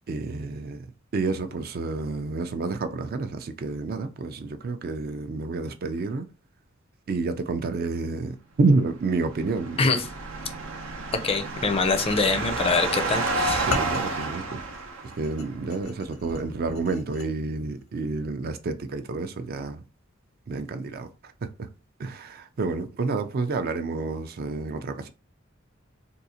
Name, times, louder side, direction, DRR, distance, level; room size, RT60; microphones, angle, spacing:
voice 1, 0.1-6.3 7.1-9.9 13.7-14.6 15.0-19.8 20.5-21.7 22.0-25.1, right 3 dB, 50° right, 0.4 m, -29 dB
sound 1, 9.2-15.5, right 3 dB, 90° right, 0.7 m, -30 dB
voice 2, 11.2-13.7, left 4 dB, 30° left, 0.4 m, -24 dB
sound 2, 13.5-17.3, left 3 dB, 80° left, 0.7 m, -36 dB
3.7 x 2.4 x 2.8 m
head